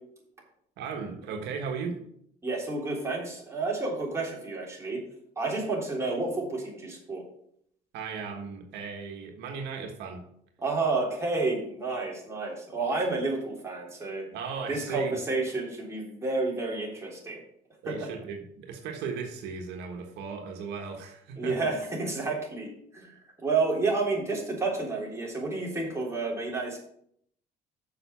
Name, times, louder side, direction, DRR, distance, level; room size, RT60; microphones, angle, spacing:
voice 1, 0.8-2.0 7.9-10.2 14.3-15.1 17.8-21.7, right 5 dB, 85° right, 3 dB, 1.5 m, -36 dB
voice 2, 2.4-5.0 5.4-7.2 10.6-14.3 14.7-17.4 17.8-18.0 21.4-26.8, right 3 dB, 15° right, -3 dB, 3.5 m, -30 dB
6.9 x 5.5 x 6.9 m, 0.69 s
cardioid pair, 110°, 17 cm